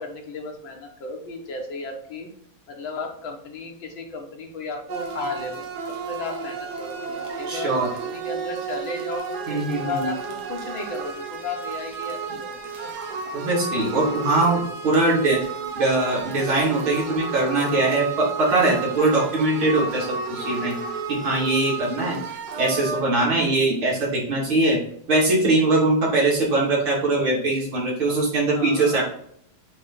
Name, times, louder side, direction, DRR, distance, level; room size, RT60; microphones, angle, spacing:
voice 1, 0.0-2.3 2.7-5.7 6.1-7.0 7.3-12.9 28.5-29.0, left 3 dB, 75° left, 2 dB, 2.0 m, -34 dB
sound 1, 4.9-23.0, right 5 dB, 60° right, 1.2 m, -32 dB
voice 2, 7.5-7.9 9.5-10.1 13.0-13.1 13.3-15.4 15.8-20.8 21.1-22.2 22.6-24.8 25.1-29.0, right 2 dB, 85° right, -6 dB, 3.5 m, -21 dB
8.5 x 3.2 x 4.1 m, 0.70 s
omnidirectional pair, 2.2 m